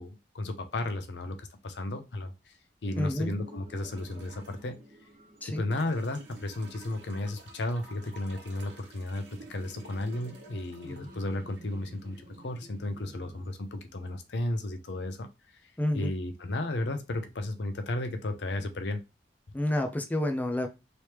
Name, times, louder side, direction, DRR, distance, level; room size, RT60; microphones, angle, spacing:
voice 1, 0.0-2.5 2.8-4.8 5.6-15.3 15.9-19.0, left 2 dB, 70° left, 7 dB, 0.6 m, -34 dB
sound 1, 2.8-13.5, right 1 dB, 55° right, 1.0 m, -54 dB
voice 2, 3.0-3.3 5.4-5.7 10.8-11.1 15.8-16.1 19.5-20.7, left 1 dB, 10° left, 4 dB, 0.4 m, -29 dB
sound 2, 3.8-4.7 5.7-12.7 14.1-14.2, right 2 dB, 90° right, 1.0 m, -52 dB
3.2 x 3.1 x 2.9 m, 0.26 s
head